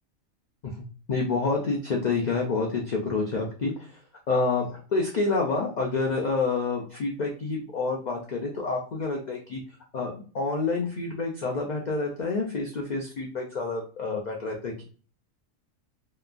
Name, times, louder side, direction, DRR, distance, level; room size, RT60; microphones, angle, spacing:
voice 1, 1.1-4.0 4.3-9.6 9.9-14.8, left 3 dB, 85° left, 0 dB, 0.4 m, -28 dB
2.9 x 2.2 x 2.4 m, 0.40 s
omnidirectional pair, 1.4 m